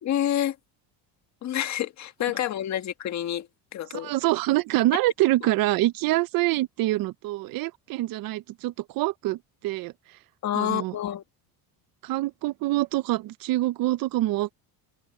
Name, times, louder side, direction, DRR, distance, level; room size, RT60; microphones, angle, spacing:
voice 1, 0.0-0.5 1.4-3.5 3.7-4.1 10.4-11.2, left 11 dB, 45° left, 1.6 m, -28 dB
voice 2, 3.9-9.9 10.5-11.0 12.0-14.5, right 17 dB, 60° right, 0.7 m, -25 dB
cardioid pair, 170°, 40 cm